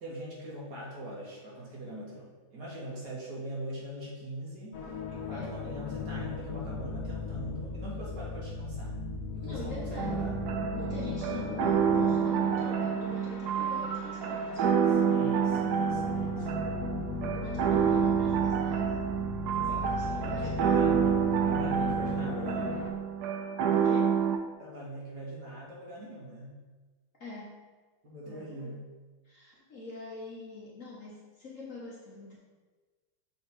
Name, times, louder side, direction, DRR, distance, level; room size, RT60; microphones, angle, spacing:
voice 1, 0.0-4.8 5.1-9.0 9.3-10.3 14.9-16.6 19.5-21.2 21.4-22.9 24.6-26.6 28.0-28.8, equal, 55° right, -5 dB, 1.9 m, -42 dB
sound 1, 4.7-22.9, left 4 dB, 80° left, 0.7 m, -38 dB
voice 2, 9.4-10.2 10.7-14.7 17.3-19.1 19.6-20.9 23.7-24.2 27.2-27.6 28.3-28.8 29.2-32.4, left 2 dB, 50° left, -6 dB, 1.1 m, -44 dB
sound 2, 10.0-24.4, right 7 dB, 80° right, 0.8 m, -28 dB
6.5 x 3.5 x 4.4 m, 1.3 s
omnidirectional pair, 2.2 m